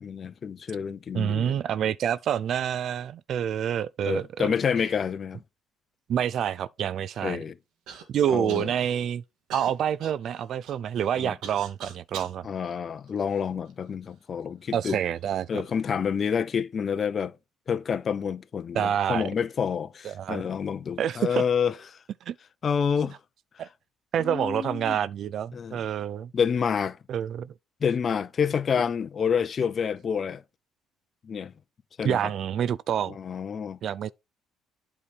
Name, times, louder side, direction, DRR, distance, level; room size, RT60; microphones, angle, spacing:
voice 1, 0.0-1.6 4.1-5.4 7.2-7.5 8.3-8.7 11.2-11.3 12.4-15.0 15.5-17.3 17.7-22.0 22.6-23.2 24.2-25.0 25.5-25.8 26.3-27.0 27.8-30.4 31.2-31.5 32.0-32.2 33.1-33.8, left 7 dB, 40° left, 0.6 m, -28 dB
voice 2, 1.1-4.5 6.1-7.4 8.1-9.2 9.5-12.5 14.7-15.6 18.7-19.3 20.0-20.4 21.0-21.4 22.3-22.4 23.6-23.7 24.1-26.3 27.1-27.5 32.0-33.2 33.8-34.1, right 9 dB, 55° right, 0.4 m, -27 dB
Human voice / Cough, 7.9-8.1 8.5-9.0 9.5-12.4 13.1-13.9 14.7-14.8 15.5-15.8, right 7 dB, 75° right, 2.1 m, -43 dB
8.6 x 4.8 x 4.5 m
cardioid pair, 105°, 0 cm